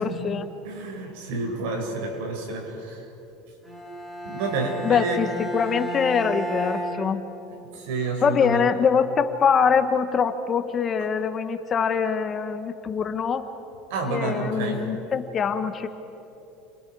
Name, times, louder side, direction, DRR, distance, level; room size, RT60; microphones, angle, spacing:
voice 1, 0.0-0.5 4.8-7.3 8.2-13.5 14.1-15.9, left 6 dB, 30° left, 9 dB, 1.2 m, -24 dB
voice 2, 0.6-3.1 4.2-5.2 7.7-8.7 13.9-14.9, right 3 dB, 80° right, 1 dB, 5.8 m, -29 dB
Bowed string instrument, 3.6-7.8, right 1 dB, 5° right, 3.9 m, -33 dB
30.0 x 25.5 x 4.8 m, 2.9 s
supercardioid pair, 135°, 0 cm